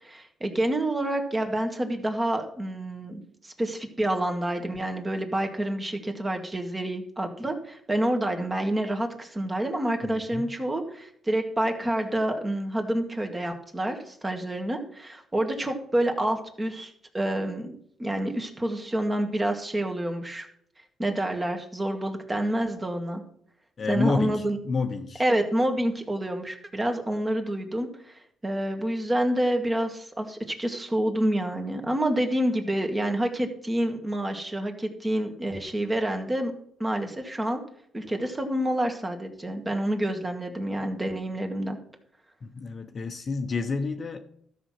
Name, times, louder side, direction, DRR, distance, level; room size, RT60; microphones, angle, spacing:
voice 1, 0.0-17.7 18.0-20.5 21.0-23.2 23.9-24.6 25.2-36.5 36.8-37.6 37.9-41.8, right 1 dB, 20° right, 4 dB, 2.0 m, -28 dB
voice 2, 10.1-10.5 23.8-25.2 42.4-44.2, left 4 dB, 45° left, 7 dB, 1.0 m, -29 dB
13.0 x 6.3 x 5.9 m, 0.67 s
cardioid pair, 90°, 0 cm